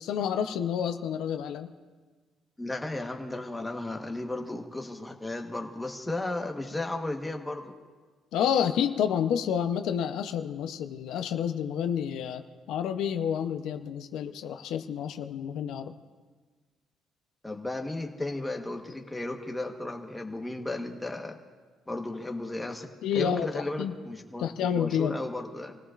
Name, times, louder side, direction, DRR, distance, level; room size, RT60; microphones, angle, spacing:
voice 1, 0.0-1.7 8.3-15.9 23.0-23.9 24.4-25.2, left 8 dB, 80° left, 7 dB, 0.7 m, -29 dB
voice 2, 2.6-7.7 17.4-21.4 21.9-24.5 24.7-25.8, left 2 dB, 10° left, 2 dB, 1.2 m, -34 dB
27.5 x 17.5 x 2.5 m, 1.4 s
cardioid pair, 145°, 0 cm